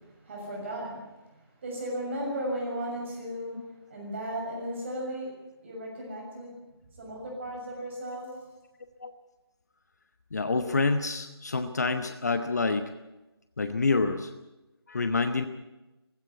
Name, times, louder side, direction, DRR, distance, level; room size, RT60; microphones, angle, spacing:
voice 1, 0.2-1.1 1.6-3.6 3.9-5.3 5.6-6.5 6.9-8.3, right 1 dB, 30° right, -1 dB, 6.7 m, -35 dB
voice 2, 10.3-12.9 13.6-14.3 14.9-15.5, left 3 dB, 40° left, 9 dB, 1.1 m, -27 dB
17.0 x 16.0 x 9.5 m, 1.0 s
figure-of-eight pair, 155°, 14 cm